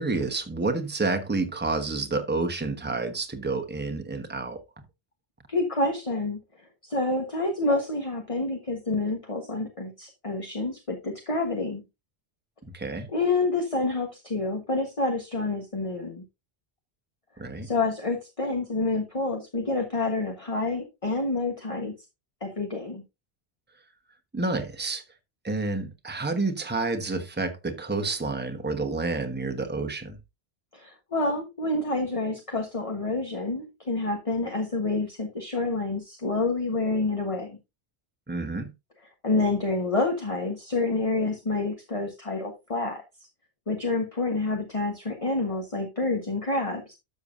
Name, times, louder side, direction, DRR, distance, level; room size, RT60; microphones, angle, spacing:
voice 1, 0.0-4.6 12.7-13.1 17.4-17.7 24.3-25.0 25.4-30.2 38.3-38.7, right 3 dB, 10° right, 1.0 m, -29 dB
voice 2, 5.5-6.4 6.8-11.8 13.1-16.2 17.6-21.9 22.4-23.0 30.7-37.6 39.2-43.0 43.7-46.9, left 2 dB, 30° left, 1.4 m, -28 dB
12.5 x 6.6 x 2.6 m
omnidirectional pair, 1.1 m